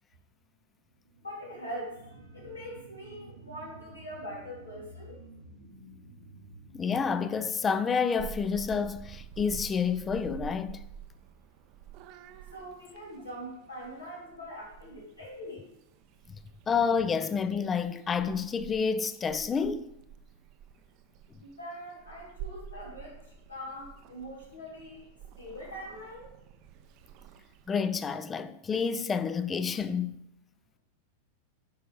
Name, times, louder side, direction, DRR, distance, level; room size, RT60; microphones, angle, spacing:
sound 1, 0.9-10.0 10.4-10.5, right 2 dB, 65° right, 0.9 m, -52 dB
voice 1, 1.2-5.2 12.5-15.7 21.4-25.1 25.4-26.3, equal, 80° left, 2.6 m, -43 dB
voice 2, 6.7-10.9 16.7-19.9 27.7-30.2, left 6 dB, 20° left, 0.4 m, -29 dB
Purr / Meow, 8.2-27.7, right 8 dB, 40° right, 0.5 m, -48 dB
9.1 x 5.4 x 3.2 m
figure-of-eight pair, 90°, 0 cm